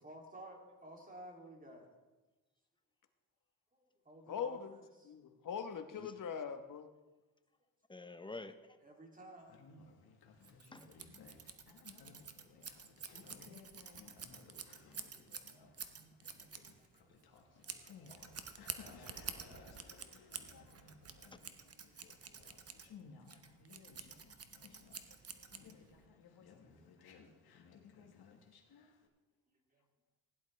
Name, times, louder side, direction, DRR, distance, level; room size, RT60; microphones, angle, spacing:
voice 1, 0.0-1.9 3.7-5.1 8.8-9.6 11.4-11.5 11.9-12.0 12.3-13.5 13.8-14.0 15.1-15.3 16.3-16.6 17.0-17.1 17.4-17.6 18.2-18.8 21.4-21.5 21.8-21.9 22.2-22.5 25.4-26.0 29.7-29.8, right 1 dB, 20° right, 1 dB, 2.7 m, -57 dB
voice 2, 4.3-4.8 5.0-6.9 19.2-19.4 19.8-20.6, left 7 dB, 55° left, 9 dB, 1.1 m, -43 dB
voice 3, 7.9-8.8 10.7-10.9 17.7-18.2 21.3-21.4 23.3-23.4, left 3 dB, 15° left, 11 dB, 0.7 m, -50 dB
Conversation, 9.4-29.1, left 5 dB, 75° left, 1.5 m, -59 dB
Scissors, 10.4-26.0, right 6 dB, 40° right, 1.0 m, -50 dB
16.5 x 11.0 x 3.3 m, 1.2 s
cardioid pair, 90°, 38 cm